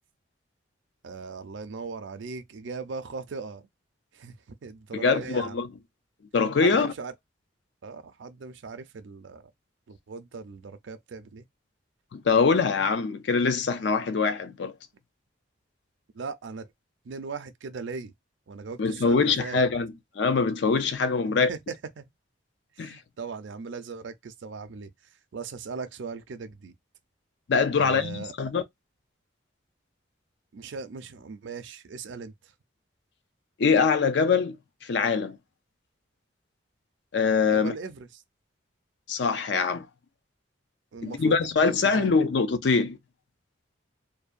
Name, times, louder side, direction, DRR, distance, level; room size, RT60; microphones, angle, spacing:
voice 1, 1.0-3.6 4.1-4.3 4.6-5.6 6.6-7.1 7.8-9.5 9.9-11.4 16.1-16.7 17.1-18.1 18.5-19.6 21.5-21.6 22.0-22.1 22.8-24.9 25.3-26.7 27.7-28.3 30.5-32.3 37.4-38.1 40.9-42.1, right 4 dB, 70° right, 0.4 m, -39 dB
voice 2, 4.9-5.7 6.3-6.9 12.1-14.7 18.8-21.5 22.8-23.0 27.5-28.6 33.6-34.6 34.8-35.4 37.1-37.7 39.1-39.9 41.0-43.0, left 5 dB, 60° left, 0.4 m, -23 dB
2.7 x 2.1 x 2.4 m
head